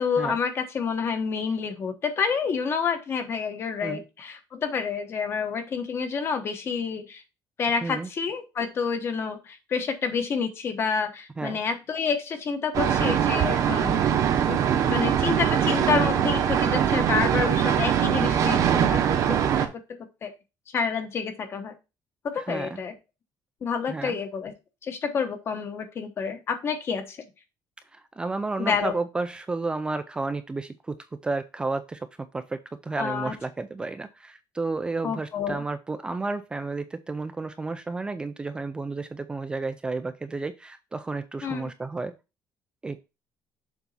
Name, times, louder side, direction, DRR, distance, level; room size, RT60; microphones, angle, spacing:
voice 1, 0.0-7.2 7.6-14.0 14.5-14.6 14.9-20.3 20.7-21.7 22.2-22.9 23.6-24.5 24.8-27.2 28.6-28.9 33.0-33.3 35.0-35.6 41.4-41.6, left 6 dB, 35° left, 7 dB, 1.1 m, -29 dB
sound 1, 12.7-19.7, right 9 dB, 50° right, 0.9 m, -22 dB
voice 2, 22.4-22.8 23.9-24.2 27.9-31.0 31.2-32.1 32.3-42.1 42.8-43.0, right 3 dB, 15° right, 9 dB, 0.3 m, -32 dB
7.0 x 4.0 x 4.1 m, 0.28 s
cardioid pair, 175°, 7 cm